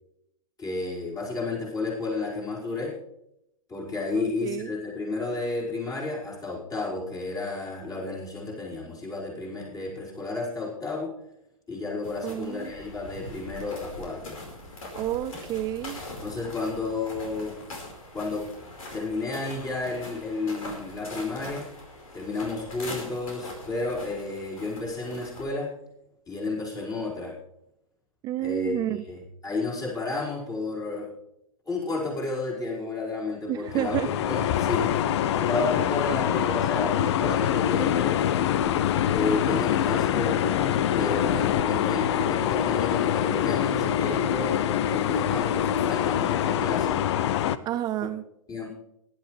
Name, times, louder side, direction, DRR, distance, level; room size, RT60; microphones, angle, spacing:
voice 1, 0.6-3.0 3.7-11.1 11.7-14.4 16.2-17.6 18.1-18.5 18.9-21.7 22.1-25.8 26.3-27.4 28.4-31.1 31.6-38.2 39.1-40.6 40.9-44.6 44.9-47.0 48.0-48.1 48.5-48.7, left 3 dB, 20° left, -4 dB, 5.3 m, -32 dB
voice 2, 4.1-4.7 12.2-12.7 15.0-16.0 28.2-29.0 33.5-34.1 47.7-48.2, right 13 dB, 20° right, 14 dB, 0.4 m, -30 dB
sound 1, 12.0-25.5, left 2 dB, 75° left, 4.9 m, -42 dB
sound 2, 33.7-47.6, left 10 dB, 50° left, 0.6 m, -25 dB
19.0 x 11.5 x 3.3 m, 0.81 s
hypercardioid pair, 115°, 18 cm